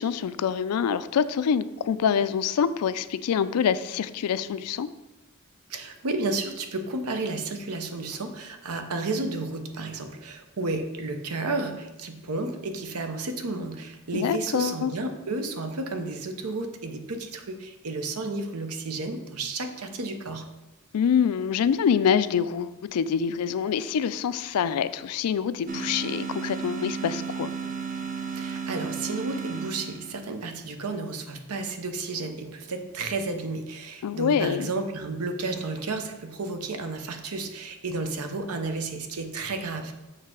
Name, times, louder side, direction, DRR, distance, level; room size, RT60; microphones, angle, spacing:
voice 1, 0.0-4.9 14.1-14.9 20.9-27.5 34.0-34.7, left 7 dB, 90° left, 14 dB, 0.4 m, -25 dB
voice 2, 5.7-20.5 28.3-39.9, right 3 dB, 80° right, 6 dB, 0.8 m, -32 dB
sound 1, 25.7-30.4, right 6 dB, 40° right, 0.6 m, -34 dB
6.6 x 3.3 x 5.9 m, 1.0 s
head